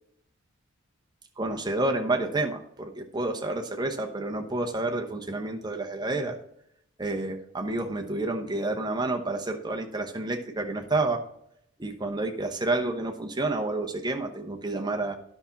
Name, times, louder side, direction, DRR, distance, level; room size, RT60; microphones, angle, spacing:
voice 1, 1.4-6.4 7.0-11.2 11.8-15.1, right 2 dB, 20° right, 3 dB, 1.0 m, -29 dB
11.0 x 5.9 x 4.1 m, 0.73 s
head